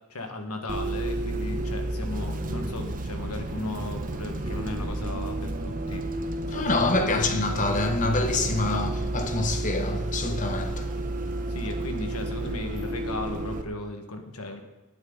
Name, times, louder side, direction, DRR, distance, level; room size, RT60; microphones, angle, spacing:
voice 1, 0.1-6.1 6.5-7.4 8.7-8.9 11.5-14.6, left 2 dB, 80° left, 1.6 m, -36 dB
Bus, 0.7-13.6, right 1 dB, 40° right, 0.9 m, -31 dB
voice 2, 6.5-11.0, left 2 dB, 35° left, 1.1 m, -26 dB
18.0 x 9.4 x 4.0 m
head